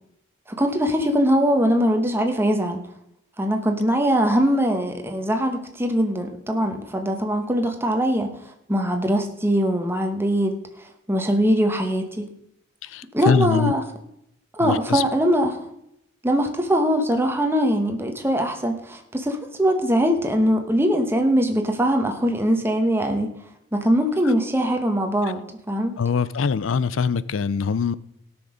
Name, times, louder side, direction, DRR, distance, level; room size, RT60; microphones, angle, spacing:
voice 1, 0.5-2.8 3.4-8.3 8.7-10.6 11.1-12.3 13.1-13.8 14.5-15.7 16.2-23.3 23.7-25.9, equal, 10° right, 4 dB, 1.3 m, -22 dB
voice 2, 12.8-13.7 14.6-15.0 24.2-24.3 26.0-27.9, left 6 dB, 80° left, 18 dB, 0.5 m, -23 dB
17.5 x 6.3 x 5.0 m, 0.78 s
head